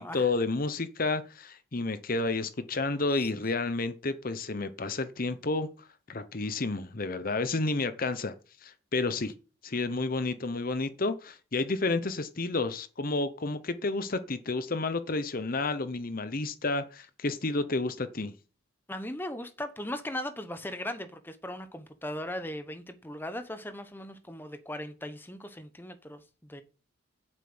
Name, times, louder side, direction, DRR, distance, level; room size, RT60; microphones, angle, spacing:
voice 1, 0.1-5.7 6.1-8.3 8.6-9.3 9.6-18.3, left 3 dB, 45° left, 0.9 m, -30 dB
voice 2, 18.9-26.6, left 1 dB, 10° left, 1.0 m, -38 dB
9.1 x 7.7 x 8.0 m
head